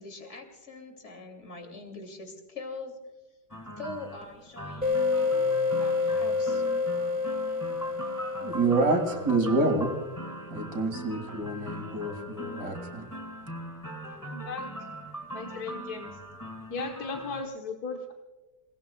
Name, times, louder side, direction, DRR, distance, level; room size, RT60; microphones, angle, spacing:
voice 1, 0.0-3.0 3.8-6.6, left 3 dB, 40° left, 4 dB, 2.9 m, -43 dB
sound 1, 3.5-17.4, right 1 dB, 10° left, 1.6 m, -41 dB
sound 2, 4.8-10.1, left 4 dB, 5° right, 1.0 m, -29 dB
voice 2, 8.4-9.9 10.5-13.0, right 2 dB, 65° right, 4 dB, 2.8 m, -27 dB
voice 3, 14.2-14.7 15.3-16.2 16.7-18.1, left 4 dB, 65° left, 2 dB, 1.7 m, -36 dB
29.5 x 19.0 x 2.3 m, 1.2 s
omnidirectional pair, 1.8 m